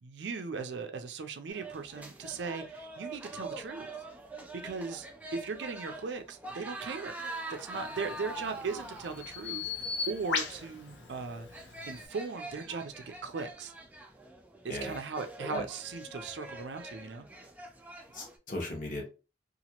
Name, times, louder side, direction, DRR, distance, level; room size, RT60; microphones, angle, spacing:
voice 1, 0.0-3.9 4.5-5.1 5.3-7.2 7.5-13.7 14.6-17.3, right 4 dB, 75° right, 6 dB, 0.4 m, -38 dB
sound 1, 1.5-18.4, right 2 dB, 10° right, 0.4 m, -45 dB
Bird vocalization bird call bird song, 7.8-12.1, left 5 dB, 80° left, 0.6 m, -38 dB
voice 2, 14.7-15.0 15.4-15.6 18.1-19.1, left 1 dB, 45° left, 0 dB, 1.0 m, -37 dB
2.9 x 2.4 x 2.9 m, 0.32 s
head